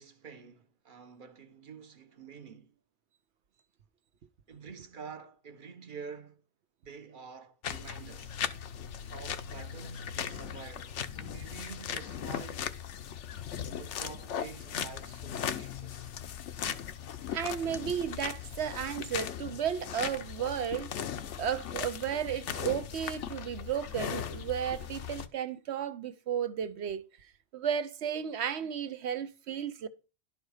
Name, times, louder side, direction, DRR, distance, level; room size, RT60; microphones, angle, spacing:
voice 1, 0.0-2.8 4.5-6.4 6.8-8.4 9.1-12.7 13.8-16.2, right 6 dB, 45° right, 1.1 m, -48 dB
sound 1, 7.6-25.3, left 8 dB, 85° left, 1.1 m, -38 dB
voice 2, 17.3-20.9 21.4-27.0 27.5-29.9, right 8 dB, 70° right, 1.1 m, -33 dB
11.5 x 4.7 x 4.8 m
omnidirectional pair, 1.2 m